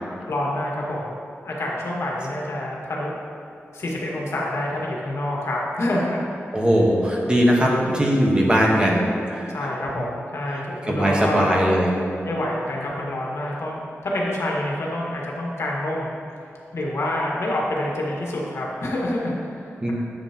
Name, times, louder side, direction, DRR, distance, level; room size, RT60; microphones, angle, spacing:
voice 1, 0.3-1.2 1.4-3.2 3.7-6.2 6.5-6.7 9.5-11.5 12.2-16.2 16.7-19.9, left 1 dB, 70° left, -3 dB, 1.8 m, -27 dB
voice 2, 6.5-9.5 9.9-10.0 10.5-11.9 19.8-19.9, equal, 20° right, -2 dB, 1.3 m, -20 dB
11.5 x 7.9 x 3.0 m, 2.7 s
wide cardioid pair, 140°, 5 cm